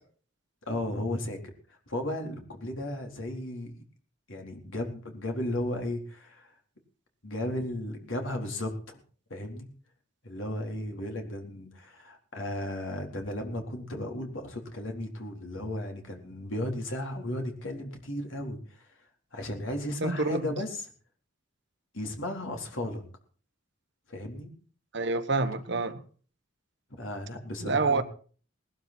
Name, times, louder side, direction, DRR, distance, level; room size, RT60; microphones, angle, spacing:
voice 1, 0.7-1.4 1.7-3.7 4.3-6.5 7.2-9.0 9.3-9.7 10.2-18.9 19.3-20.8 21.9-23.0 24.1-24.5 27.0-28.0, left 1 dB, 70° left, 4.1 m, -35 dB
voice 2, 20.0-20.5 24.9-26.0 27.6-28.0, right 3 dB, 60° right, 1.3 m, -27 dB
19.5 x 12.5 x 4.5 m
head